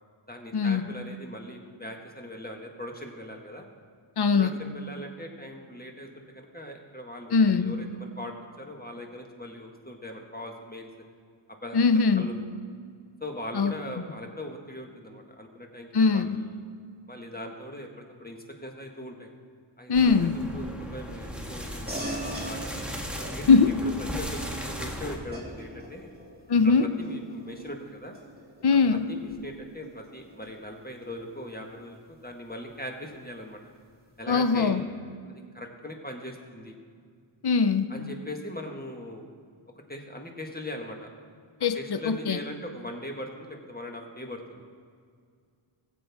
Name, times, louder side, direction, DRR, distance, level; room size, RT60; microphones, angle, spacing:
voice 1, 0.3-3.6 4.4-10.9 11.5-11.8 12.1-12.3 13.2-16.6 17.1-19.3 19.8-19.9 20.2-22.7 23.2-23.5 24.2-26.1 26.6-28.1 29.1-33.6 34.2-34.8 35.3-36.8 37.9-39.3 39.9-41.1 41.7-44.7, left 1 dB, 20° left, 2 dB, 1.5 m, -40 dB
voice 2, 4.2-4.5 7.3-7.7 11.7-12.3 13.5-13.7 15.9-16.4 19.9-20.3 23.5-23.7 26.5-26.9 28.6-29.1 34.3-34.8 37.4-37.9 41.6-42.4, left 5 dB, 50° left, 10 dB, 0.7 m, -21 dB
sound 1, 19.9-25.2, equal, ahead, 1.4 m, -36 dB
sound 2, 21.9-31.7, right 1 dB, 20° right, 2.5 m, -43 dB
20.0 x 7.7 x 3.5 m, 2.1 s
wide cardioid pair, 70°, 50 cm